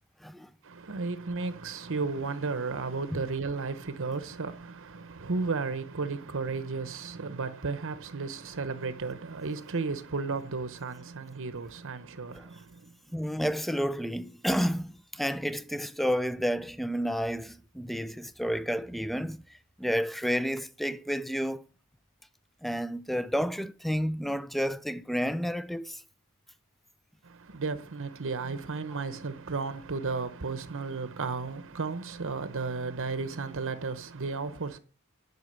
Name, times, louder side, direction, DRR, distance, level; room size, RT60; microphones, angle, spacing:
voice 1, 0.6-12.9 27.2-34.8, right 4 dB, 65° right, 0.9 m, -34 dB
voice 2, 13.1-19.4 19.8-21.6 22.6-26.0, equal, ahead, 0.4 m, -30 dB
10.5 x 5.9 x 8.1 m
head